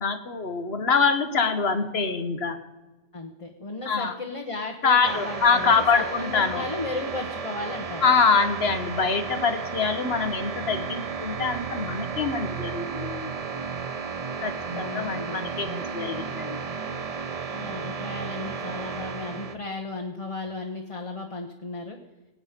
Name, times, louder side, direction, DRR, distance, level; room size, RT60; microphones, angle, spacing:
voice 1, 0.0-2.6 3.9-4.1 4.8-6.6 8.0-13.3 14.4-16.6, left 5 dB, 65° left, 10 dB, 1.4 m, -24 dB
voice 2, 3.1-8.0 14.7-15.4 17.5-22.0, left 3 dB, 30° left, 2 dB, 1.2 m, -35 dB
sound 1, 5.0-19.6, right 5 dB, 40° right, 0.8 m, -33 dB
19.0 x 9.0 x 5.1 m, 1.1 s
omnidirectional pair, 1.1 m